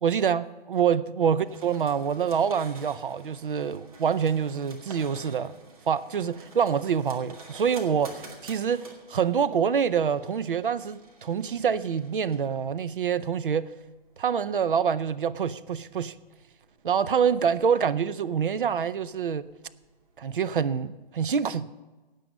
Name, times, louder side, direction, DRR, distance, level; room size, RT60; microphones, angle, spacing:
voice 1, 0.0-5.5 5.9-13.7 14.2-16.2 16.8-19.5 20.2-21.8, right 7 dB, 55° right, 0.6 m, -26 dB
sound 1, 1.4-20.4, right 2 dB, 35° right, 1.9 m, -51 dB
15.5 x 9.1 x 5.3 m
hypercardioid pair, 170°, 31 cm